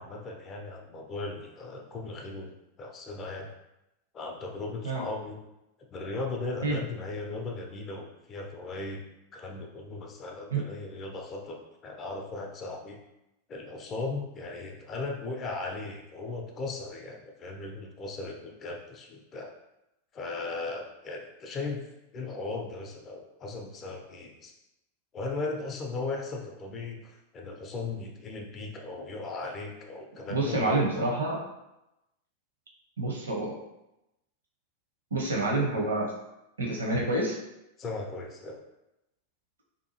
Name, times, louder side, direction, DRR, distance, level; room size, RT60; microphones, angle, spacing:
voice 1, 0.0-2.5 2.8-3.5 4.1-5.4 5.9-9.0 9.3-13.0 13.5-19.5 20.1-21.9 22.1-24.5 25.1-30.8 37.8-38.6, left 3 dB, 30° left, 2 dB, 0.5 m, -37 dB
voice 2, 30.3-31.4 33.0-33.6 35.1-36.1 36.6-37.4, right 2 dB, 70° right, -1 dB, 0.7 m, -28 dB
2.7 x 2.3 x 2.7 m, 0.91 s
figure-of-eight pair, 90°, 0 cm